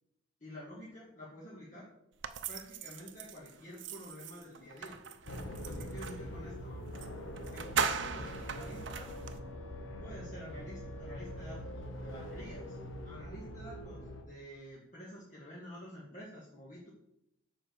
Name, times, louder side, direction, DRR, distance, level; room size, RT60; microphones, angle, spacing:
voice 1, 0.4-1.9 2.5-5.0 5.6-6.9 7.5-9.3 10.0-16.9, equal, 40° left, -6 dB, 1.9 m, -49 dB
sound 1, 2.2-6.3 7.0-7.1 7.4-9.4, right 6 dB, 60° right, 0.6 m, -39 dB
sound 2, 5.2-14.2, equal, 75° left, 1.2 m, -43 dB
7.3 x 5.0 x 6.9 m, 0.80 s
head